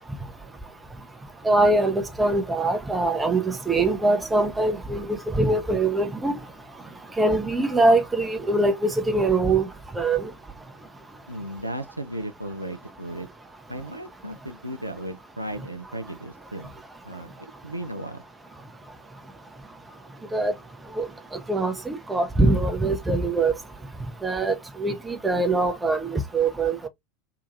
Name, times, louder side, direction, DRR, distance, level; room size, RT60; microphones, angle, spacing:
voice 1, 1.4-6.4 7.1-10.3 20.3-20.5 20.9-23.6 24.2-26.9, right 2 dB, 15° right, 0.6 m, -23 dB
voice 2, 11.3-13.3 13.7-16.7 17.0-18.2, right 1 dB, 85° right, 0.3 m, -35 dB
2.8 x 2.2 x 2.5 m
figure-of-eight pair, 80°, 0 cm